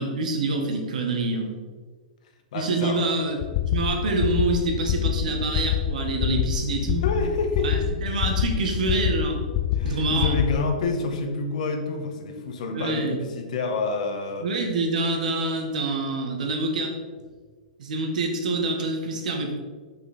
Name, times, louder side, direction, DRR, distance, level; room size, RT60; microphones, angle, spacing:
voice 1, 0.0-1.5 2.5-3.4 3.7-7.0 7.6-9.4 9.8-10.4 12.7-13.2 14.4-16.9 17.8-19.6, right 3 dB, 75° right, 3 dB, 1.6 m, -26 dB
voice 2, 2.5-3.0 7.0-7.8 9.8-14.5, left 3 dB, 65° left, 5 dB, 1.2 m, -28 dB
sound 1, 3.4-10.7, left 10 dB, 40° left, 0.4 m, -26 dB
5.9 x 5.7 x 4.3 m, 1.5 s
hypercardioid pair, 140°, 4 cm